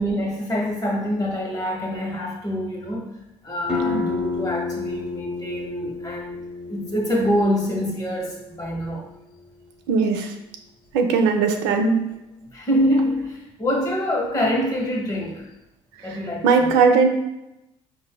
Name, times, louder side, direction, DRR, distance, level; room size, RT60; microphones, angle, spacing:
voice 1, 0.0-3.1 3.4-9.1 12.4-15.5 16.0-16.7, equal, 30° left, -1 dB, 1.2 m, -25 dB
sound 1, 3.7-9.1, left 4 dB, 5° right, 0.8 m, -30 dB
voice 2, 9.9-10.3 10.9-12.0 16.4-17.1, right 5 dB, 85° right, 4 dB, 0.4 m, -18 dB
4.7 x 2.6 x 2.3 m, 0.90 s
supercardioid pair, 80°, 13 cm